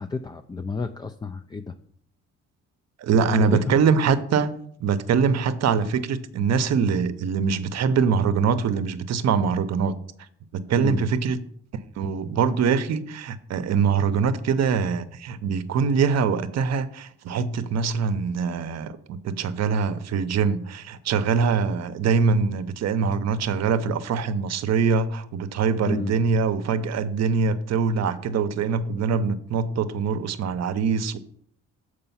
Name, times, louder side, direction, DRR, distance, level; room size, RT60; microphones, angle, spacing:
voice 1, 0.0-1.7 3.3-3.8 10.8-11.1 25.8-26.2, left 4 dB, 15° left, 0.3 m, -30 dB
voice 2, 3.0-9.9 10.5-11.4 12.0-31.2, right 5 dB, 60° right, 0.7 m, -23 dB
6.8 x 4.9 x 5.6 m
cardioid pair, 90°, 30 cm